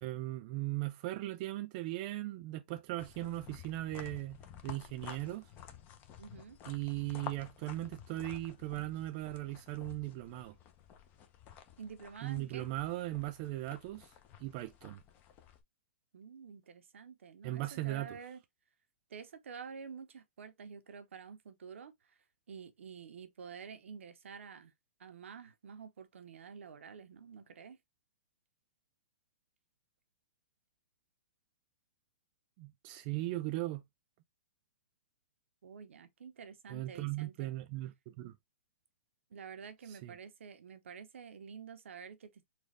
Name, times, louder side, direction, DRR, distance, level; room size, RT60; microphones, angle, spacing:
voice 1, 0.0-4.4 4.6-5.5 6.7-10.5 12.2-14.1 14.4-15.0 17.4-18.1 32.6-33.8 36.7-38.3 40.0-40.1, right 17 dB, 40° right, 0.4 m, -38 dB
sound 1, 3.0-15.6, left 9 dB, 30° left, 0.6 m, -52 dB
voice 2, 6.2-6.6 11.8-12.7 16.1-18.4 19.1-22.2 22.5-24.7 25.0-27.8 35.6-37.5 39.3-42.5, right 6 dB, 75° right, 0.8 m, -49 dB
4.1 x 2.3 x 3.2 m
hypercardioid pair, 130°, 7 cm